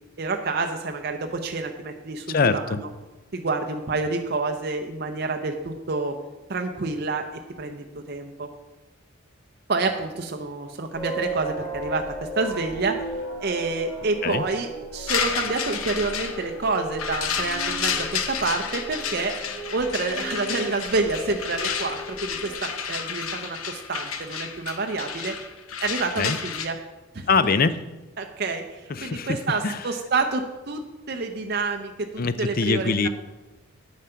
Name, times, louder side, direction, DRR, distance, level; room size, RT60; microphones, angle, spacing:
voice 1, 0.2-2.9 3.3-6.1 6.5-7.2 7.6-8.5 9.7-13.0 13.4-19.3 19.7-25.4 25.8-26.8 27.1-27.3 28.2-33.1, right 3 dB, 50° right, 4 dB, 0.6 m, -28 dB
voice 2, 2.3-2.8 14.2-14.4 26.2-26.4 27.3-27.8 28.9-29.4 29.6-29.8 32.2-33.1, left 4 dB, 45° left, 13 dB, 0.4 m, -23 dB
sound 1, 10.9-22.5, right 1 dB, 15° left, 2.7 m, -36 dB
sound 2, 15.1-26.7, left 7 dB, 80° left, 0.9 m, -31 dB
8.8 x 7.3 x 5.7 m, 1.1 s
head